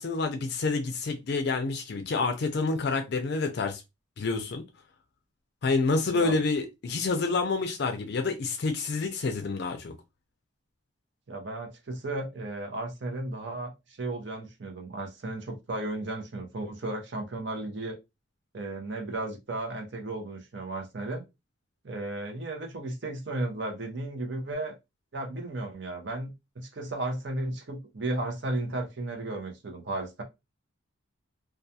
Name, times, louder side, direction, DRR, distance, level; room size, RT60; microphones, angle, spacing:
voice 1, 0.0-3.8 4.2-4.6 5.6-9.9, left 3 dB, 50° left, 0.4 m, -28 dB
voice 2, 11.3-13.7 14.0-18.0 18.5-21.2 21.8-24.8 25.1-30.2, right 2 dB, 55° right, 0.7 m, -34 dB
2.3 x 2.3 x 2.7 m
head